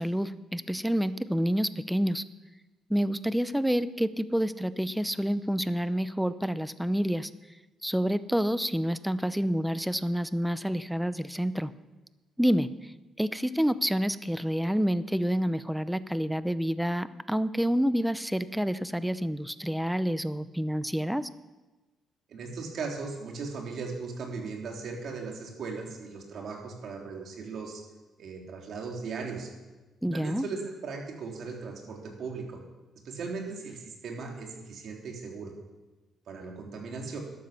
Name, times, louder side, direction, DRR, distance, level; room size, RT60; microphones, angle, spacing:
voice 1, 0.0-2.2 2.9-7.3 7.8-11.7 12.4-12.9 13.2-21.3 30.0-30.4, equal, 5° right, 14 dB, 0.7 m, -28 dB
voice 2, 22.3-27.8 28.2-29.5 30.1-32.6 33.0-35.5 36.3-37.2, right 4 dB, 65° right, 1 dB, 3.5 m, -38 dB
12.5 x 11.0 x 7.0 m, 1.2 s
cardioid pair, 90°, 0 cm